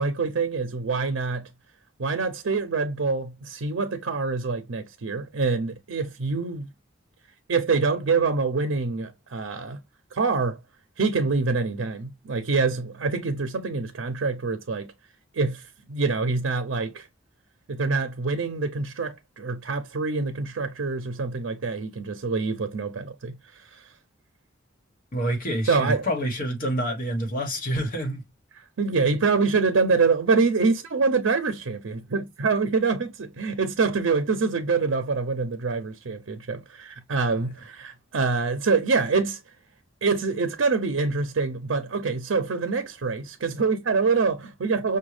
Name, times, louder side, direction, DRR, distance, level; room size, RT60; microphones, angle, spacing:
voice 1, 0.0-1.5 2.0-6.7 7.5-9.8 10.1-10.6 11.0-14.9 15.3-15.6 15.9-17.1 17.7-23.9 25.7-26.1 28.6-39.4 40.0-45.0, right 4 dB, 80° right, 0.6 m, -25 dB
voice 2, 25.1-28.2, equal, 45° left, 1.3 m, -27 dB
6.1 x 2.2 x 3.2 m
head